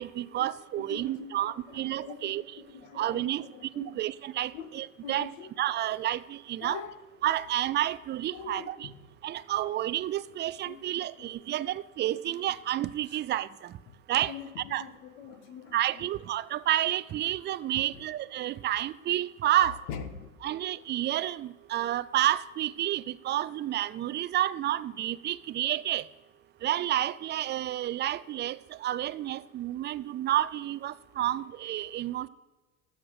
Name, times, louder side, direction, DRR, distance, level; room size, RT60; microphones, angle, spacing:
voice 1, 0.0-2.4 3.0-3.4 3.7-5.3 5.6-6.8 7.2-8.9 9.2-13.7 14.1-14.3 14.7-14.8 15.7-19.8 20.4-26.1 26.6-32.3, right 13 dB, 25° right, 0.4 m, -30 dB
voice 2, 0.7-4.1 4.5-4.7 5.0-5.5 6.6-7.0 8.3-9.0 10.6-11.3 12.3-12.4 13.9-14.0 14.3-16.1 17.9-18.0 19.6-20.6, left 6 dB, 65° left, 1.5 m, -44 dB
13.0 x 7.9 x 4.8 m
hypercardioid pair, 80°, 41 cm